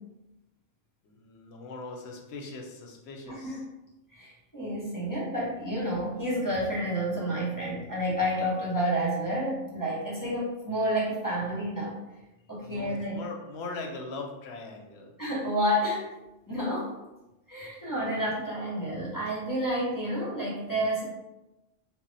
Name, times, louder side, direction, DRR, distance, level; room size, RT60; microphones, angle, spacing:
voice 1, 1.0-3.6 12.6-15.1, left 3 dB, 65° left, 1 dB, 0.7 m, -40 dB
voice 2, 3.3-3.6 4.1-12.0 12.5-13.2 15.2-16.1 16.5-16.9 17.5-21.0, equal, 20° left, -7 dB, 0.6 m, -30 dB
2.1 x 2.1 x 3.8 m, 0.99 s
omnidirectional pair, 1.3 m